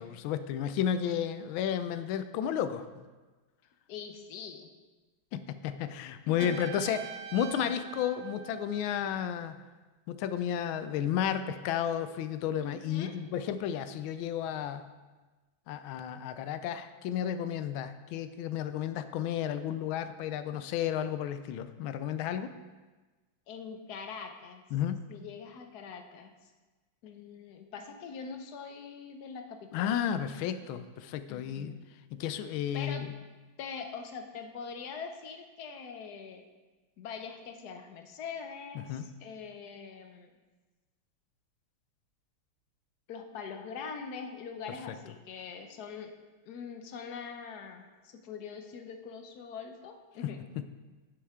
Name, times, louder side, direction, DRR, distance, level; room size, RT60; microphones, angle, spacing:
voice 1, 0.0-3.1 5.3-7.0 7.3-9.5 10.1-14.8 15.7-22.5 24.7-25.0 29.7-31.7 32.1-33.1 38.7-39.1 44.9-45.0 50.2-50.6, left 9 dB, 80° left, 11 dB, 1.4 m, -32 dB
voice 2, 3.9-4.7 6.3-6.8 12.6-13.1 23.5-24.6 25.1-26.5 27.0-29.9 31.3-31.8 32.7-33.1 33.6-36.4 37.0-40.3 43.1-46.2 46.5-50.4, left 6 dB, 60° left, 5 dB, 1.2 m, -43 dB
Trumpet, 6.4-9.2, right 8 dB, 75° right, 0.7 m, -44 dB
9.9 x 7.7 x 3.6 m, 1.3 s
omnidirectional pair, 2.2 m